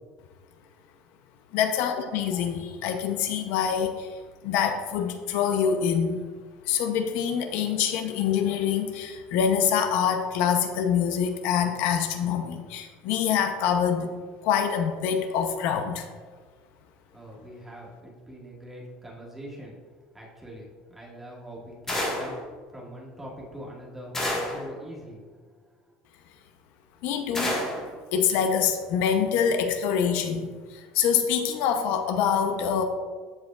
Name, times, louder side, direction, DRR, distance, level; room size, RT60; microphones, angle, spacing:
voice 1, 1.5-4.2 4.4-6.2 6.7-14.1 14.4-16.1 27.0-27.6 28.1-32.8, left 7 dB, 70° left, 6 dB, 0.7 m, -25 dB
voice 2, 17.1-19.7 20.1-25.3 25.7-25.8, equal, 5° right, -5 dB, 1.7 m, -43 dB
sound 1, 21.9-22.4 24.1-24.7 27.3-27.9, left 1 dB, 15° left, 1.5 m, -28 dB
14.0 x 4.8 x 2.4 m, 1.5 s
cardioid pair, 150°, 3 cm